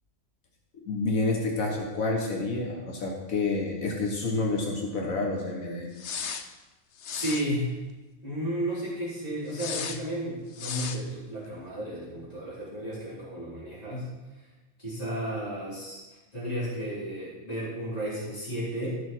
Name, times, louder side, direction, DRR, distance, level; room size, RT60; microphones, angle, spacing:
voice 1, 0.7-5.9, left 3 dB, 90° left, -1 dB, 1.8 m, -29 dB
sound 1, 6.0-6.5 7.0-7.5 9.5-10.0 10.5-11.0, left 7 dB, 65° left, 1.0 m, -35 dB
voice 2, 7.1-7.7 8.2-14.1 14.8-16.0 16.3-19.0, equal, 30° left, -9 dB, 3.7 m, -33 dB
13.5 x 6.4 x 4.5 m, 1.1 s
omnidirectional pair, 1.4 m